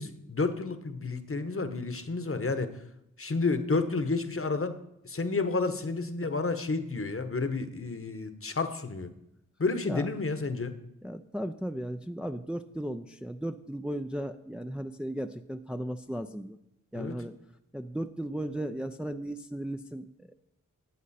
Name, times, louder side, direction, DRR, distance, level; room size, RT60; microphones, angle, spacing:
voice 1, 0.0-2.7 3.2-4.8 5.0-9.1 9.6-10.7 16.9-17.2, left 3 dB, 45° left, 10 dB, 1.1 m, -30 dB
voice 2, 11.0-16.6 16.9-17.4 17.7-20.3, right 1 dB, 5° right, 7 dB, 0.5 m, -36 dB
12.5 x 8.1 x 4.2 m, 0.82 s
wide cardioid pair, 55°, 32 cm